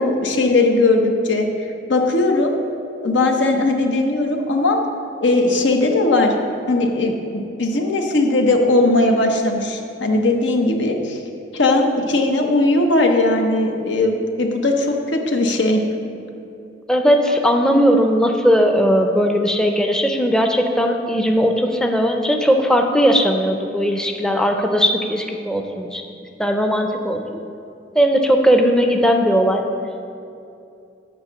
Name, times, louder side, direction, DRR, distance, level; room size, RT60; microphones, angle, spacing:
voice 1, 0.0-1.5 1.9-2.5 3.0-4.8 5.2-6.3 6.7-11.2 11.5-15.8, left 2 dB, 90° left, 3 dB, 0.9 m, -18 dB
voice 2, 16.9-26.0 26.4-27.2 27.9-29.6, equal, 5° left, 4 dB, 0.5 m, -18 dB
8.7 x 4.9 x 6.8 m, 2.6 s
head